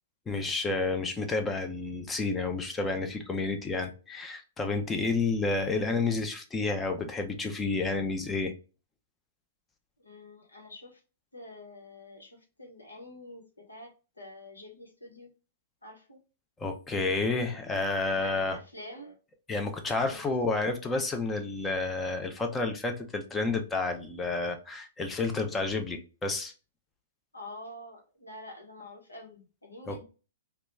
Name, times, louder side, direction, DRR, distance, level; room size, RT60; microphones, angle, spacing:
voice 1, 0.3-8.5 16.6-18.6 19.5-26.5 29.9-30.0, left 3 dB, 15° left, 0.5 m, -30 dB
voice 2, 5.7-6.1 10.0-11.0 11.3-15.3 15.8-16.2 17.9-19.2 19.9-20.2 27.3-30.0, left 1 dB, 85° left, 1.0 m, -47 dB
2.9 x 2.3 x 3.3 m
figure-of-eight pair, 105°, 0 cm